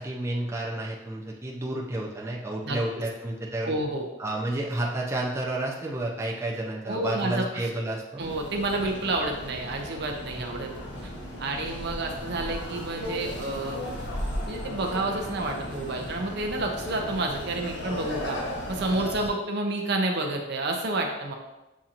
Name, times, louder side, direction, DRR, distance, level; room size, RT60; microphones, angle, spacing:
voice 1, 0.0-3.7 4.2-8.2, right 1 dB, 15° right, -3 dB, 0.5 m, -31 dB
voice 2, 3.6-4.1 6.9-7.7 8.2-10.7 11.0-11.1 11.4-13.9 14.5-18.4 18.7-21.3, right 2 dB, 60° right, 2 dB, 0.6 m, -29 dB
sound 1, 8.2-19.3, left 1 dB, 75° left, 1.0 m, -36 dB
7.2 x 2.8 x 2.5 m, 1.0 s
head